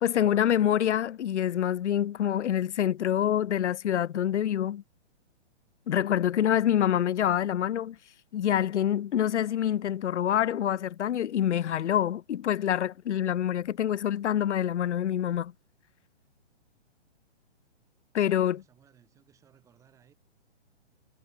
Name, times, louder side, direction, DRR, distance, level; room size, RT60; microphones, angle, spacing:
voice 1, 0.0-4.8 5.9-8.0 8.3-15.5 18.1-18.6, left 10 dB, 90° left, 0.7 m, -26 dB
voice 2, 18.3-20.1, right 8 dB, 10° right, 6.1 m, -62 dB
hypercardioid pair, 175°, 34 cm